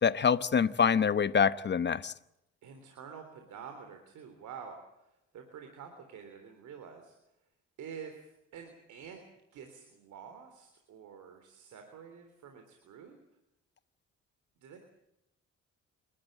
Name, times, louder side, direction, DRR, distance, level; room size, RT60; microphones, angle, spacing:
voice 1, 0.0-2.1, left 6 dB, 35° left, 1.0 m, -26 dB
voice 2, 2.6-7.2 7.8-9.2 9.5-13.2 14.6-14.8, right 7 dB, 75° right, 3.7 m, -48 dB
28.5 x 13.0 x 9.0 m
cardioid pair, 90°, 30 cm